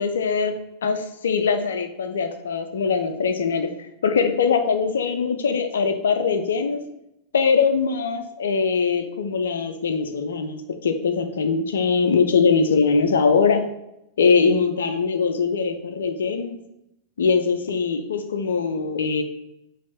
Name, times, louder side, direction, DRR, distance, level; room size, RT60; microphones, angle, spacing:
voice 1, 0.0-3.7 4.0-6.8 7.3-13.6 14.2-16.6 17.2-19.2, left 5 dB, 65° left, 7 dB, 0.7 m, -22 dB
6.2 x 3.4 x 5.8 m, 0.86 s
figure-of-eight pair, 90°, 0 cm